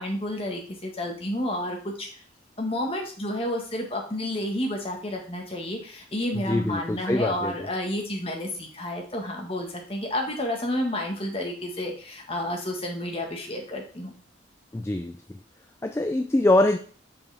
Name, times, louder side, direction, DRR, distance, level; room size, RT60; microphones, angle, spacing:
voice 1, 0.0-2.1 2.6-14.1, left 1 dB, 30° left, 1 dB, 1.4 m, -30 dB
voice 2, 6.3-7.7 14.7-15.2 15.8-16.8, left 1 dB, 15° left, 6 dB, 0.3 m, -24 dB
7.3 x 5.2 x 3.4 m, 0.42 s
head